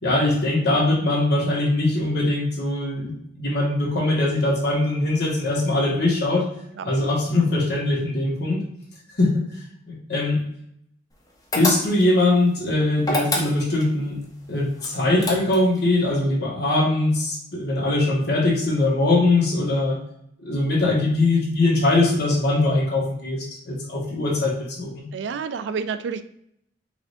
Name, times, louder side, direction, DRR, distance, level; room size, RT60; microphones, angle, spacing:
voice 1, 0.0-6.4 6.8-8.6 9.2-9.6 9.9-10.4 11.5-14.2 14.5-20.0 20.4-25.0, left 2 dB, 60° left, -3 dB, 1.4 m, -21 dB
sound 1, 11.5-12.2 13.0-13.9 14.8-15.8, left 1 dB, 20° left, 0.7 m, -26 dB
voice 2, 25.1-26.2, right 6 dB, 65° right, 11 dB, 0.3 m, -29 dB
4.8 x 3.3 x 2.6 m, 0.73 s
head